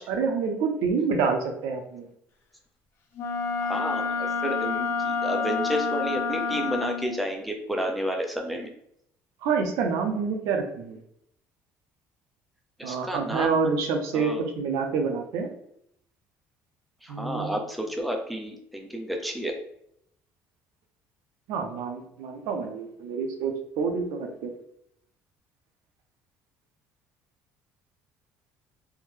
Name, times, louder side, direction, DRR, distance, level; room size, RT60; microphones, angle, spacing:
voice 1, 0.1-2.1 9.4-11.0 12.8-15.5 17.1-17.6 21.5-24.5, right 5 dB, 75° right, 4 dB, 0.6 m, -27 dB
Wind instrument woodwind instrument, 3.2-7.2, left 5 dB, 45° left, 0.6 m, -28 dB
voice 2, 3.6-8.7 12.8-13.5 14.1-14.4 17.0-19.5, equal, ahead, 2 dB, 0.3 m, -31 dB
3.4 x 2.1 x 3.2 m, 0.72 s
cardioid pair, 160°, 5 cm